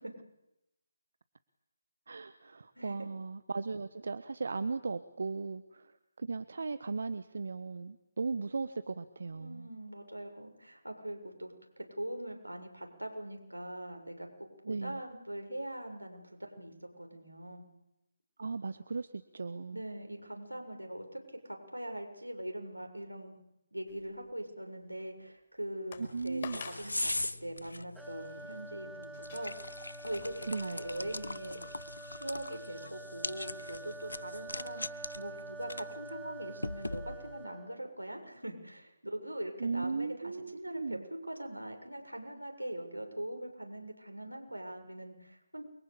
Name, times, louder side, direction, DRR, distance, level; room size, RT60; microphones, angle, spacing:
voice 1, 2.1-9.7 14.6-15.0 18.4-19.8 26.0-26.6 30.5-30.8 39.6-41.0, right 4 dB, 55° right, 13 dB, 1.2 m, -37 dB
voice 2, 9.3-17.7 19.7-21.2 21.4-23.4 23.7-27.1 27.4-29.5 30.0-31.6 32.1-41.0 41.3-45.6, right 1 dB, 85° right, 4 dB, 7.1 m, -42 dB
sound 1, 23.9-24.5 25.0-25.1 25.9-26.1 26.4-26.9 27.6-27.8 29.1-31.1 31.5-31.6, left 6 dB, 30° left, 5.7 m, -48 dB
sound 2, 26.0-37.4, left 2 dB, 75° left, 1.1 m, -41 dB
sound 3, 28.0-37.9, right 3 dB, ahead, 1.1 m, -48 dB
29.0 x 23.5 x 8.5 m, 0.90 s
figure-of-eight pair, 150°, 0 cm